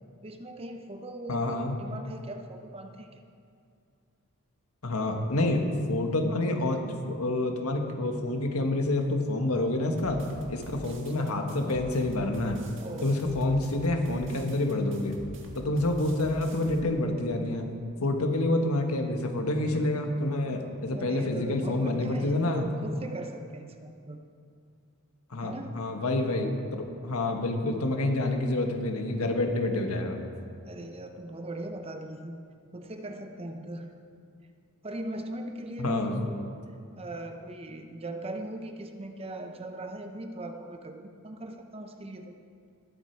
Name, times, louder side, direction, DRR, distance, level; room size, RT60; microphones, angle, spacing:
voice 1, 0.2-3.2 10.8-10.9 11.2-11.4 12.8-13.2 20.9-24.2 25.4-25.9 30.6-32.4 32.7-33.9 34.8-36.6 37.0-42.3, right 1 dB, 25° right, 5 dB, 0.7 m, -39 dB
voice 2, 1.3-1.8 4.8-5.6 5.9-10.2 10.5-12.6 13.0-15.2 15.5-17.7 18.0-22.7 25.3-30.2 35.8-36.2, left 2 dB, 80° left, 4 dB, 1.5 m, -28 dB
sound 1, 10.0-16.8, right 1 dB, 60° right, 1.7 m, -46 dB
19.5 x 8.4 x 4.6 m, 2.4 s
head